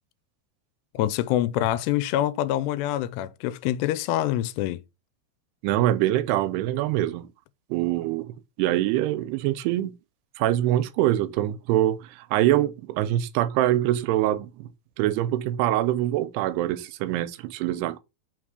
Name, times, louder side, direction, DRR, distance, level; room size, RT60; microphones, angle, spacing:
voice 1, 0.9-4.8, left 13 dB, 90° left, 2.7 m, -25 dB
voice 2, 5.6-7.3 7.7-8.3 8.6-10.0 10.4-14.7 15.0-18.0, right 13 dB, 85° right, 2.7 m, -24 dB
5.9 x 3.7 x 4.8 m
omnidirectional pair, 4.7 m